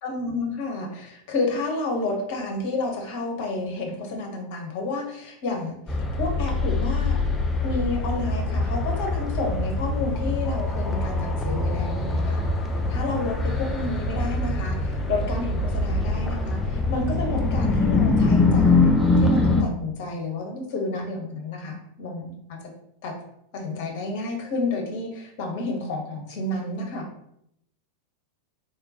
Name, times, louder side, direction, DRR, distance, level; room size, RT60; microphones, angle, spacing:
voice 1, 0.0-5.8 6.2-7.2 7.6-12.4 12.9-22.3 23.0-23.1 23.5-27.0, left 2 dB, 45° left, 2 dB, 0.9 m, -30 dB
sound 1, 5.9-19.6, left 3 dB, 10° left, 0.5 m, -23 dB
3.7 x 3.0 x 2.9 m, 0.74 s
figure-of-eight pair, 90°, 0 cm